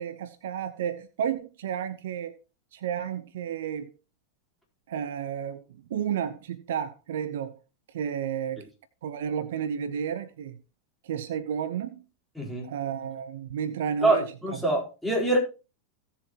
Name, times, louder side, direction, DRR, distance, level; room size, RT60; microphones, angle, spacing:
voice 1, 0.0-2.3 2.7-3.9 4.9-5.6 5.9-7.6 7.9-8.6 9.0-10.6 11.0-12.0 12.6-14.3, right 8 dB, 60° right, 0.7 m, -32 dB
voice 2, 12.4-12.7 14.0-15.4, right 2 dB, ahead, 4.1 m, -25 dB
16.5 x 6.9 x 3.0 m
figure-of-eight pair, 90°, 0 cm